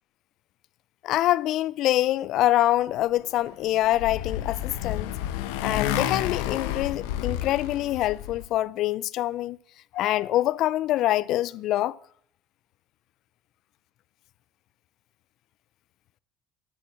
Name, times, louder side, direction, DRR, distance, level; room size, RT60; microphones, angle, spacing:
voice 1, 1.0-5.2 5.6-9.6 9.9-12.0, left 14 dB, 65° left, 0.5 m, -25 dB
Motorcycle, 3.4-8.5, left 11 dB, 85° left, 0.9 m, -30 dB
12.5 x 8.8 x 7.4 m
supercardioid pair, 85°, 0 cm